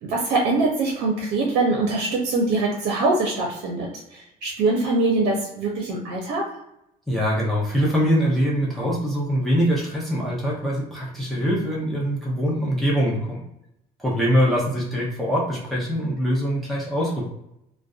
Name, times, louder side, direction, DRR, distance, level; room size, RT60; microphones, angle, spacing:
voice 1, 0.1-6.4, right 3 dB, 80° right, 0 dB, 0.6 m, -23 dB
voice 2, 7.1-13.4 14.0-17.3, equal, ahead, -5 dB, 0.7 m, -23 dB
2.4 x 2.1 x 2.4 m, 0.82 s
cardioid pair, 110°, 17 cm